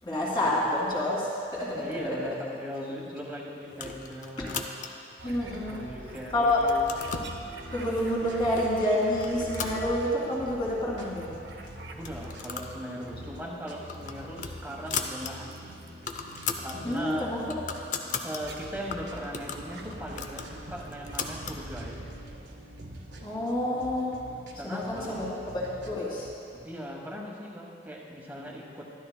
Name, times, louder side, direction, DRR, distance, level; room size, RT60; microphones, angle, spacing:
voice 1, 0.0-2.2 4.4-4.5 5.2-5.8 6.0-6.7 7.1-11.4 16.8-17.6 23.2-24.2 24.6-26.3, left 1 dB, 25° left, -6 dB, 2.2 m, -29 dB
voice 2, 1.7-4.7 5.6-6.9 11.9-15.6 16.6-17.3 18.2-21.9 24.6-25.2 26.6-28.9, equal, 10° right, -2 dB, 1.2 m, -39 dB
sound 1, 3.7-5.1 5.7-6.2 6.5-7.3 8.1-8.2 8.6-8.8 9.2-10.4 10.7-10.8 11.1-11.2 11.9-12.8 13.1-13.3 13.7-15.3 15.7-15.8 15.9-16.8 17.2-18.4 18.9-21.6, left 6 dB, 45° left, 0.5 m, -37 dB
sound 2, 5.2-12.6 13.0-13.8 15.5-15.9 16.9-17.1 18.2-19.0 19.5-23.8, right 2 dB, 65° right, 0.7 m, -46 dB
sound 3, 6.9-26.3, equal, 80° right, 1.2 m, -46 dB
12.5 x 12.5 x 2.2 m, 2.5 s
head